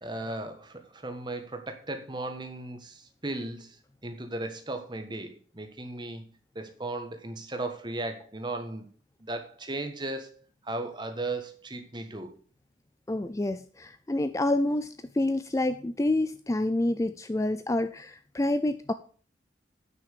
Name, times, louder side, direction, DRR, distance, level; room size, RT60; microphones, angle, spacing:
voice 1, 0.0-3.8 4.0-6.2 6.5-8.8 9.2-10.3 10.6-12.3, right 2 dB, 25° right, 6 dB, 1.5 m, -36 dB
voice 2, 13.1-18.9, left 1 dB, 15° left, 11 dB, 0.4 m, -28 dB
9.8 x 6.0 x 6.8 m, 0.42 s
head